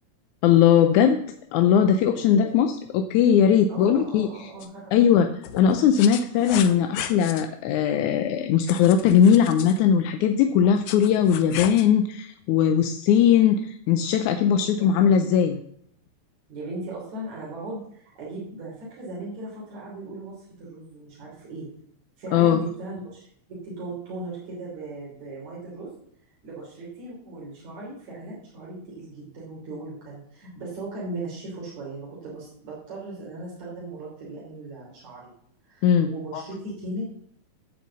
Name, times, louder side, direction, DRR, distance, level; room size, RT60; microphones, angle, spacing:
voice 1, 0.4-1.2 1.5-4.3 4.9-5.3 5.6-15.6 22.3-22.6 35.8-36.4, left 8 dB, 85° left, 6 dB, 2.1 m, -19 dB
voice 2, 3.7-4.9 14.5-15.0 16.5-21.7 22.2-25.9 26.4-35.3 35.6-37.1, right 2 dB, 70° right, -6 dB, 4.7 m, -38 dB
sound 1, 4.6-4.7 5.4-7.4 8.7-9.8 10.6-11.9, left 10 dB, 70° left, 1.6 m, -35 dB
10.0 x 7.4 x 7.4 m, 0.66 s
omnidirectional pair, 3.3 m